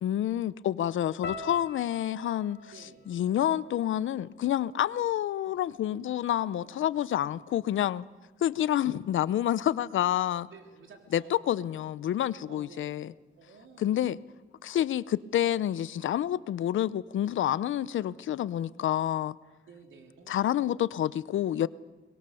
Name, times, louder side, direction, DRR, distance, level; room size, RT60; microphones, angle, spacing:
voice 1, 0.0-2.7 3.1-8.0 8.4-10.5 11.1-13.1 13.8-14.2 14.6-19.4 20.3-21.7, left 11 dB, 90° left, 0.6 m, -28 dB
sound 1, 1.2-5.4 5.7-6.5 7.1-7.3, left 4 dB, 60° left, 2.2 m, -46 dB
voice 2, 2.7-3.1 6.3-6.8 10.5-11.4 12.5-13.0 13.4-14.1 18.0-18.2 19.6-20.7, right 4 dB, 85° right, 3.6 m, -53 dB
23.5 x 21.0 x 7.0 m
cardioid pair, 65°, 20 cm